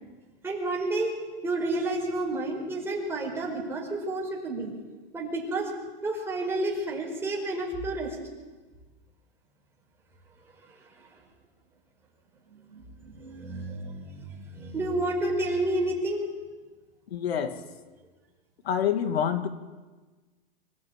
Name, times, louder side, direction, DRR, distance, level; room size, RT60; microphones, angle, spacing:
voice 1, 0.4-1.1 1.4-4.7 5.1-5.7 6.0-8.1 12.7-14.3 14.5-16.3, right 2 dB, 10° right, -2 dB, 5.1 m, -30 dB
voice 2, 17.1-17.6 18.6-19.5, left 8 dB, 85° left, 8 dB, 2.2 m, -26 dB
25.5 x 15.5 x 8.9 m, 1.3 s
supercardioid pair, 160°, 30 cm